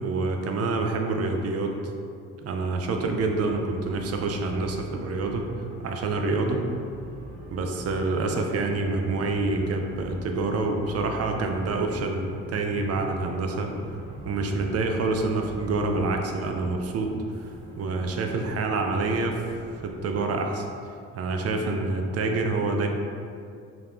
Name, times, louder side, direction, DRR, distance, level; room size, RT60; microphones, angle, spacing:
voice 1, 0.0-1.9 2.4-5.5 5.8-6.6 7.5-13.7 14.2-17.2 17.8-19.4 19.8-20.7 21.1-22.9, right 3 dB, 55° right, 3 dB, 0.5 m, -27 dB
sound 1, 3.0-20.2, right 2 dB, 75° right, 0.9 m, -43 dB
3.5 x 2.9 x 3.7 m, 2.4 s
cardioid pair, 90°, 30 cm